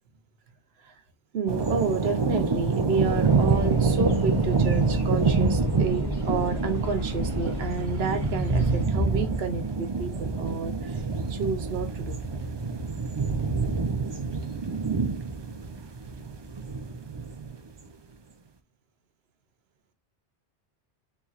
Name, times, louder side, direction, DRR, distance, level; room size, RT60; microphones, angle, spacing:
voice 1, 1.3-11.0 11.3-12.2, right 5 dB, 65° right, 0.9 m, -30 dB
sound 1, 1.5-17.6, right 4 dB, 45° right, 0.3 m, -27 dB
sound 2, 3.0-8.9, left 4 dB, 40° left, 1.5 m, -33 dB
4.2 x 3.3 x 2.4 m
omnidirectional pair, 1.2 m